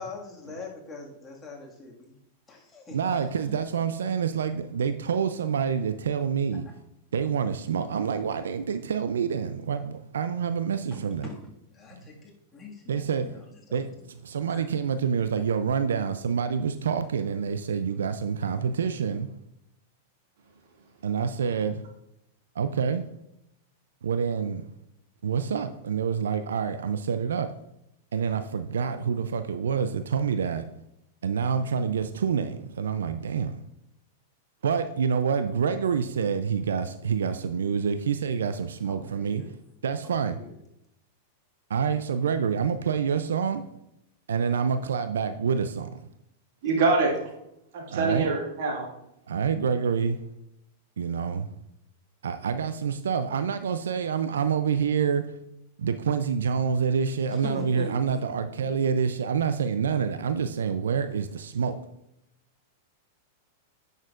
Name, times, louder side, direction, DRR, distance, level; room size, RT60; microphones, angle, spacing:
voice 1, 0.0-2.1 2.5-3.0 3.4-3.7 11.2-11.4 11.7-12.9 14.5-14.6 38.9-39.5 40.0-40.5 57.4-58.0, left 4 dB, 20° left, 1.9 m, -41 dB
voice 2, 2.9-6.7 7.1-11.3 12.9-13.4 13.7-19.3 21.0-21.8 22.6-23.1 24.0-24.7 25.2-27.6 28.1-30.7 31.2-33.6 34.6-39.5 39.8-40.4 41.7-43.7 44.3-46.0 47.9-48.3 49.3-50.2 51.0-51.5 52.2-55.3 55.8-61.8, right 6 dB, 80° right, 0.4 m, -27 dB
voice 3, 46.6-47.3 47.7-48.9, right 3 dB, 65° right, 2.2 m, -25 dB
9.4 x 6.5 x 2.5 m
hypercardioid pair, 110°, 0 cm